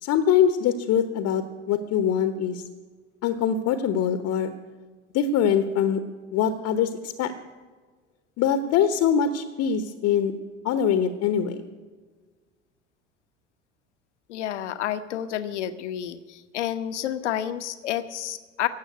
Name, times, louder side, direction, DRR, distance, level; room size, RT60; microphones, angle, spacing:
voice 1, 0.0-2.6 3.2-4.5 5.1-6.0 6.3-7.3 8.4-10.4 10.6-11.6, left 8 dB, 45° left, 10 dB, 1.1 m, -23 dB
voice 2, 14.3-18.7, left 11 dB, 70° left, 12 dB, 1.0 m, -30 dB
16.5 x 7.4 x 9.4 m, 1.4 s
figure-of-eight pair, 65°, 37 cm